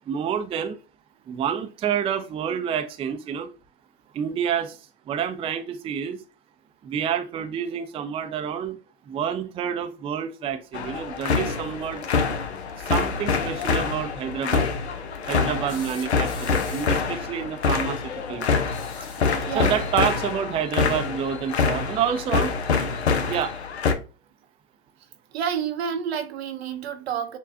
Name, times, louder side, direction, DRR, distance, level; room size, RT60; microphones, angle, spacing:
voice 1, 0.1-0.8 1.3-3.5 4.1-4.8 5.1-6.2 6.8-8.8 9.1-12.0 12.8-14.7 15.3-18.6 19.5-22.5 23.3-23.5, right 8 dB, 20° right, 0.4 m, -28 dB
sound 1, 10.7-23.9, left 5 dB, 85° left, 0.7 m, -26 dB
voice 2, 15.4-15.9 19.4-19.8 23.1-23.2 25.3-27.4, right 8 dB, 75° right, 0.8 m, -30 dB
sound 2, 15.7-17.1 18.6-19.4 21.1-21.2 22.6-22.7, left 4 dB, 40° left, 2.1 m, -44 dB
6.8 x 2.3 x 2.6 m
hypercardioid pair, 95°, 32 cm